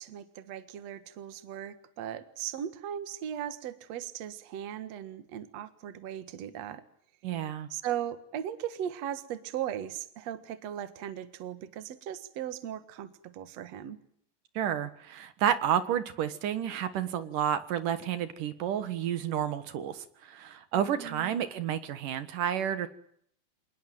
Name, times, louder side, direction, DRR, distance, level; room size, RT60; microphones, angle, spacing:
voice 1, 0.0-6.8 7.7-14.0 20.7-21.4, right 10 dB, 55° right, 12 dB, 2.5 m, -38 dB
voice 2, 7.2-7.7 14.6-22.9, right 9 dB, 75° right, 12 dB, 3.0 m, -30 dB
27.5 x 20.0 x 9.3 m, 0.66 s
omnidirectional pair, 3.9 m